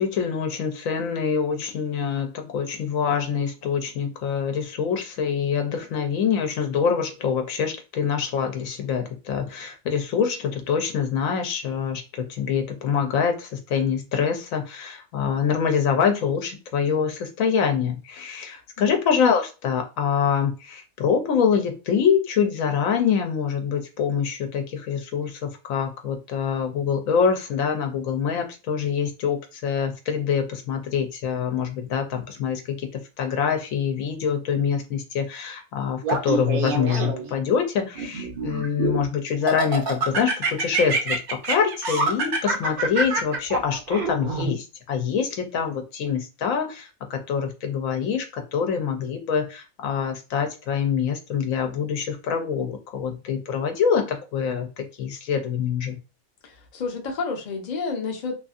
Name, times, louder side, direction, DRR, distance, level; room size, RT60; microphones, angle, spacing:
voice 1, 0.0-32.9 33.2-56.0, left 7 dB, 75° left, 5 dB, 1.0 m, -25 dB
Laughter, 36.0-37.3 37.9-39.0 39.5-44.5, right 3 dB, 55° right, 0.6 m, -26 dB
voice 2, 56.4-58.4, left 4 dB, 45° left, 1 dB, 0.6 m, -30 dB
2.6 x 2.6 x 2.4 m, 0.31 s
omnidirectional pair, 1.5 m